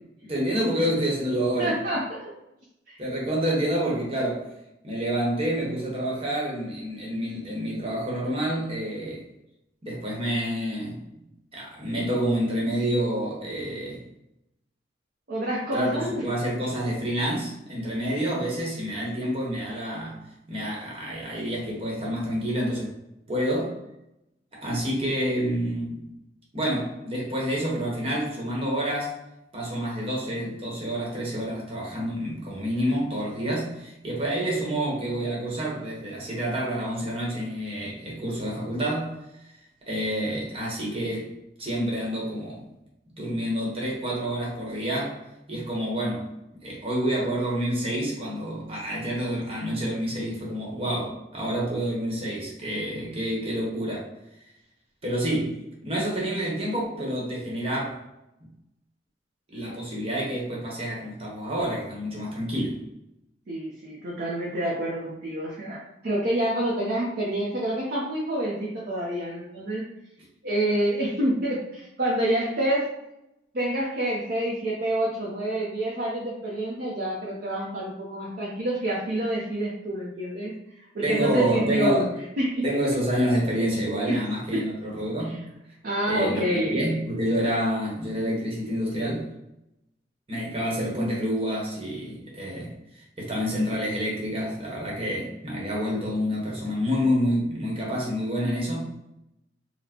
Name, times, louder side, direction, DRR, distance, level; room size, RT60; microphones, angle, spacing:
voice 1, 0.3-1.8 3.0-4.5 4.8-9.2 9.8-11.0 11.5-14.0 15.7-20.2 20.5-22.9 23.3-23.8 24.5-26.0 26.5-29.1 29.5-39.2 39.8-41.3 41.6-42.6 43.1-45.2 45.5-46.3 46.6-54.1 55.0-58.0 59.5-62.8 81.0-82.1 82.6-85.4 86.1-89.3 90.3-98.8, equal, 30° right, -3 dB, 0.9 m, -28 dB
voice 2, 1.6-2.3 2.9-3.0 15.3-16.2 63.5-69.9 70.4-72.9 73.5-82.1 82.4-82.7 84.0-84.2 84.5-84.7 85.2-85.4 85.8-86.7, right 1 dB, 55° right, -5 dB, 0.6 m, -27 dB
4.1 x 2.0 x 2.8 m, 0.85 s
head